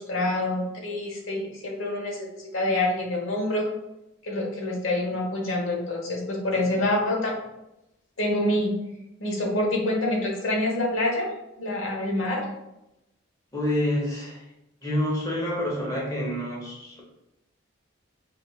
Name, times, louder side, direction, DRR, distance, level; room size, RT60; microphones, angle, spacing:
voice 1, 0.0-3.6 4.2-7.3 8.2-8.7 9.2-11.3 11.6-12.4, left 1 dB, 90° left, -1 dB, 1.0 m, -26 dB
voice 2, 13.5-14.4 14.8-17.0, left 1 dB, 20° left, -4 dB, 0.8 m, -27 dB
5.3 x 2.4 x 2.3 m, 0.90 s
head